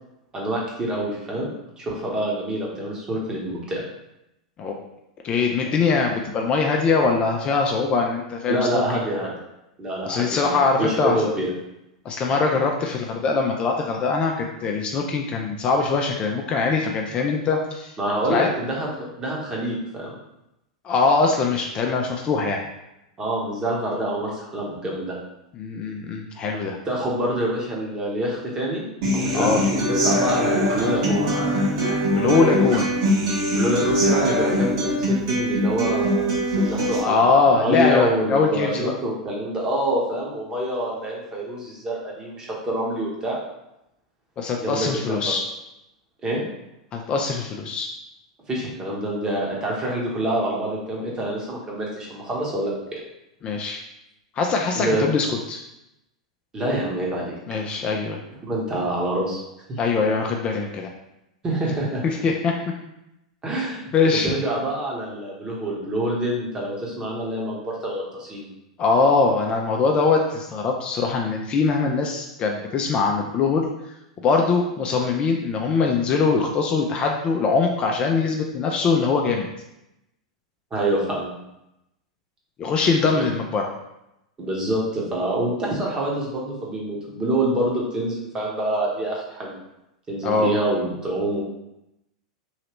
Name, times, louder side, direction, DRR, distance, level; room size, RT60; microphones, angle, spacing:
voice 1, 0.3-1.5 1.8-3.8 8.5-9.3 9.8-11.5 18.0-20.1 23.2-25.2 26.8-28.8 29.1-31.3 33.5-37.3 37.6-43.4 44.6-45.3 46.2-46.4 48.5-53.0 54.8-55.1 56.5-57.3 58.5-59.4 59.7-59.8 61.4-62.0 63.4-68.5 80.7-81.3 83.1-83.3 84.4-89.5 90.1-91.4, right 1 dB, 20° right, -3 dB, 1.1 m, -26 dB
voice 2, 5.2-9.0 10.1-11.3 12.0-17.9 18.3-18.5 20.8-22.6 25.6-26.8 29.3-29.6 32.1-32.9 37.0-39.0 44.4-45.4 46.9-47.9 53.4-53.8 54.4-55.6 57.5-58.2 59.8-60.9 62.0-62.5 63.9-64.3 68.8-73.7 74.2-79.5 82.6-83.7 90.2-90.5, left 4 dB, 30° left, 1 dB, 0.4 m, -22 dB
Human voice / Acoustic guitar, 29.0-37.0, equal, 50° right, 1.4 m, -22 dB
3.1 x 2.8 x 3.1 m, 0.87 s
figure-of-eight pair, 95°, 3 cm